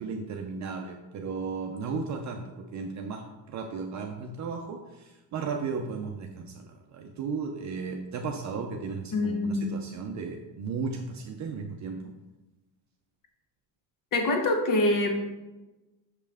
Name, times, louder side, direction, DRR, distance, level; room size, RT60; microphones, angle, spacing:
voice 1, 0.0-12.1, right 5 dB, 40° right, 2 dB, 0.5 m, -35 dB
voice 2, 9.1-9.7 14.1-15.1, left 2 dB, 45° left, 4 dB, 1.1 m, -25 dB
6.5 x 5.4 x 3.5 m, 1.1 s
cardioid pair, 160°, 45 cm